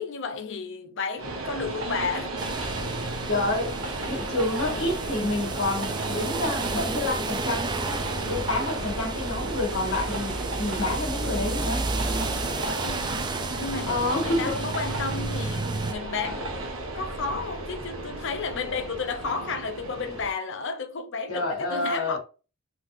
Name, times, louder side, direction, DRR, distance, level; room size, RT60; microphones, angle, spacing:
voice 1, 0.0-2.4 12.6-16.5 16.9-22.2, left 4 dB, 60° left, 0.6 m, -32 dB
Train, 1.2-20.3, right 2 dB, 75° right, 0.9 m, -34 dB
sound 1, 2.4-15.9, right 3 dB, 20° right, 0.4 m, -32 dB
sound 2, 2.5-19.0, left 1 dB, 25° left, 1.0 m, -44 dB
voice 2, 3.3-3.8 4.1-11.9 13.9-14.5 21.3-22.2, left 2 dB, 75° left, 1.8 m, -28 dB
3.7 x 3.2 x 2.6 m
head